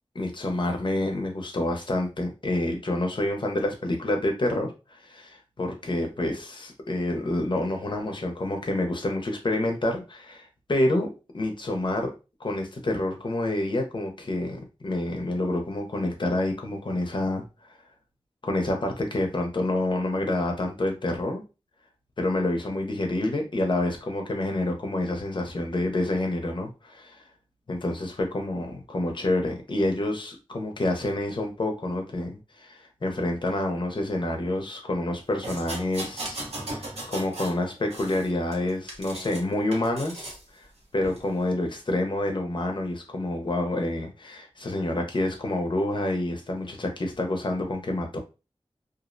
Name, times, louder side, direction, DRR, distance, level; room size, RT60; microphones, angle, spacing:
voice 1, 0.1-12.1 12.4-17.4 18.4-21.4 22.2-27.2 27.7-40.7 40.9-48.2, left 1 dB, 50° left, 3 dB, 0.6 m, -28 dB
sound 1, 35.4-37.6 37.9-39.4 39.7-40.4 41.0-41.2, right 1 dB, 80° right, 0.7 m, -37 dB
2.5 x 2.0 x 2.5 m, 0.29 s
wide cardioid pair, 65°, 10 cm